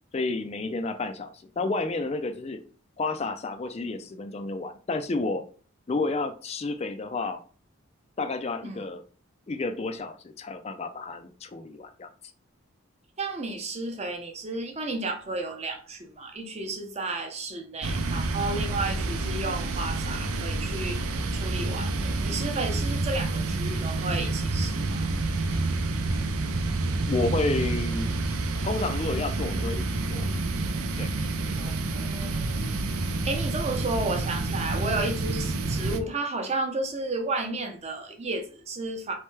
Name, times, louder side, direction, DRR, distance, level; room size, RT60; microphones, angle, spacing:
voice 1, 0.1-2.6 3.0-5.4 5.9-7.4 8.2-9.0 9.5-12.1 27.1-28.1 28.6-30.3 31.0-31.1 31.4-31.7, left 3 dB, 30° left, 0.3 m, -31 dB
voice 2, 13.2-21.0 21.3-25.1 31.6-32.6 33.2-39.1, right 2 dB, 30° right, 0.7 m, -32 dB
sound 1, 17.8-36.0, right 2 dB, 85° right, 0.6 m, -28 dB
4.3 x 3.2 x 3.2 m
head